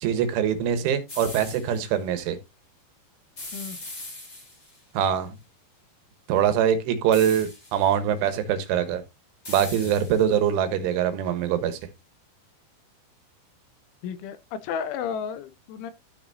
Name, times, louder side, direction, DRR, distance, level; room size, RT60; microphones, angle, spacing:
voice 1, 0.0-2.4 5.0-5.4 6.3-9.0 9.5-11.8, right 9 dB, 80° right, 3.6 m, -23 dB
sound 1, 1.1-1.8 3.4-4.8 7.1-7.9 9.4-10.5, left 2 dB, 35° left, 1.0 m, -40 dB
voice 2, 14.0-15.9, left 7 dB, 80° left, 3.1 m, -33 dB
13.0 x 5.9 x 2.7 m
omnidirectional pair, 5.7 m